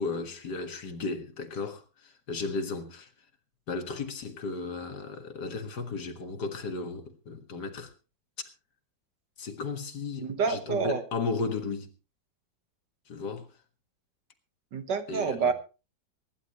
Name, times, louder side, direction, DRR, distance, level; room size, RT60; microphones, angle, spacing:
voice 1, 0.0-3.1 3.7-7.9 9.4-11.9 13.1-13.5 15.1-15.5, left 4 dB, 60° left, 2.2 m, -35 dB
voice 2, 10.2-11.0 14.7-15.5, right 5 dB, 65° right, 2.0 m, -28 dB
24.0 x 11.0 x 3.1 m
omnidirectional pair, 2.0 m